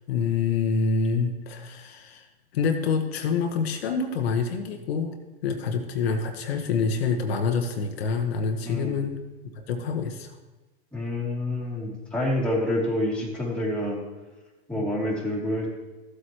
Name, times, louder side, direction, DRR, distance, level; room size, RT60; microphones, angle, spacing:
voice 1, 0.1-2.3 2.5-5.1 5.4-9.2 9.5-10.4 14.7-14.9, left 5 dB, 70° left, 4 dB, 1.3 m, -26 dB
voice 2, 8.6-9.0 10.9-14.0 14.7-15.7, left 1 dB, 5° left, -4 dB, 2.6 m, -27 dB
14.0 x 8.1 x 3.0 m, 1.2 s
hypercardioid pair, 110°, 32 cm